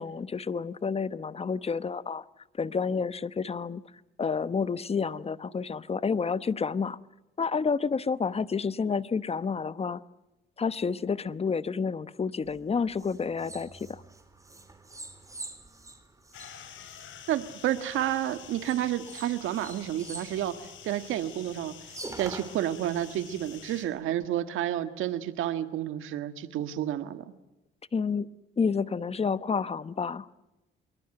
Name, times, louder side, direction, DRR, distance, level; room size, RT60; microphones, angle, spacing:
voice 1, 0.0-2.2 2.6-3.8 4.2-7.0 7.4-10.0 10.6-14.0 27.9-30.3, left 5 dB, 30° left, 1.0 m, -29 dB
sound 1, 12.4-17.9 18.6-21.2 21.6-21.7 21.9-23.6, right 2 dB, 15° right, 4.0 m, -46 dB
sound 2, 16.3-23.9, left 9 dB, 75° left, 4.5 m, -48 dB
voice 2, 17.3-20.6 20.8-21.7 22.2-27.2, right 12 dB, 85° right, 1.7 m, -30 dB
26.0 x 23.0 x 7.8 m
cardioid pair, 90°, 20 cm